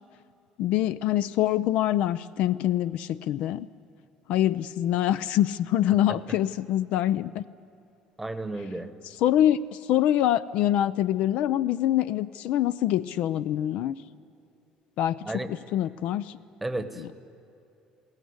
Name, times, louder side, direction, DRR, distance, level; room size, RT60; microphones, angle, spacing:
voice 1, 0.6-3.7 4.3-7.4 9.2-14.0 15.0-15.4 15.7-16.4 17.0-17.2, left 12 dB, 65° left, 16 dB, 0.5 m, -25 dB
voice 2, 8.2-8.9 15.2-15.5 16.6-17.2, right 2 dB, 5° right, 10 dB, 1.1 m, -33 dB
21.5 x 17.5 x 9.6 m, 2.7 s
cardioid pair, 160°, 2 cm